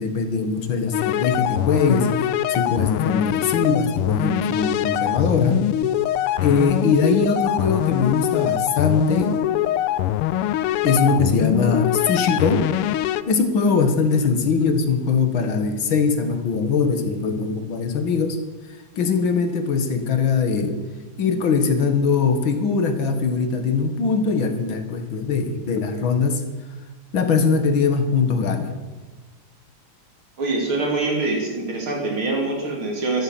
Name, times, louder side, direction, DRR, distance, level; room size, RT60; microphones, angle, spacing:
voice 1, 0.0-2.1 2.5-5.6 6.4-9.4 10.8-12.7 13.3-18.4 19.0-20.8 21.2-26.4 27.1-28.8, left 5 dB, 65° left, 8 dB, 2.2 m, -21 dB
sound 1, 0.9-13.2, left 12 dB, 85° left, 1.6 m, -23 dB
voice 2, 30.4-33.2, right 2 dB, 70° right, 1 dB, 3.8 m, -24 dB
13.0 x 12.5 x 7.6 m, 1.3 s
omnidirectional pair, 2.4 m